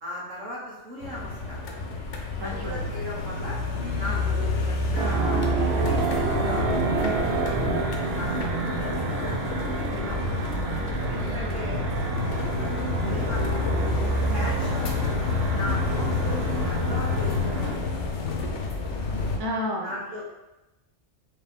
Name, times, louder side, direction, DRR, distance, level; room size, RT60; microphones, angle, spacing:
voice 1, 0.0-1.6 2.4-3.6 4.0-7.5 8.0-10.3 11.1-11.8 12.2-13.7 14.3-15.1 15.5-18.7 19.8-20.2, left 1 dB, 80° right, -5 dB, 1.6 m, -38 dB
sound 1, 1.0-19.4, left 3 dB, 70° left, 1.0 m, -28 dB
voice 2, 2.4-2.8 3.8-4.3 8.0-8.3 11.1-11.6 14.2-14.5 19.4-20.0, left 1 dB, 30° right, -1 dB, 0.5 m, -34 dB
sound 2, 5.0-17.8, right 4 dB, 60° right, 0.7 m, -29 dB
4.6 x 3.0 x 3.6 m, 0.99 s
omnidirectional pair, 1.3 m